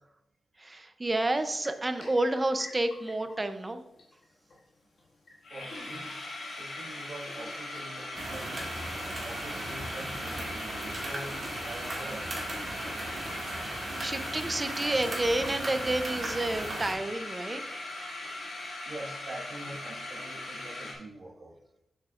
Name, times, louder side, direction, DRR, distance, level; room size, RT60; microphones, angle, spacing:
voice 1, 0.6-3.8 13.3-13.7 14.0-17.6, right 2 dB, 20° right, 9 dB, 0.5 m, -30 dB
sound 1, 1.3-1.4 1.6-3.4 3.7-3.8 4.0-4.2 4.5-4.6 5.0-5.1 5.3-20.9, left 2 dB, 65° left, 1.7 m, -40 dB
voice 2, 5.5-6.1 6.4-8.7 9.2-12.6 15.8-16.6 18.8-21.5, right 1 dB, 75° right, -7 dB, 1.5 m, -44 dB
sound 2, 8.1-16.9, right 2 dB, 40° right, 1.8 m, -37 dB
7.9 x 7.6 x 2.4 m, 0.84 s
wide cardioid pair, 170°, 0 cm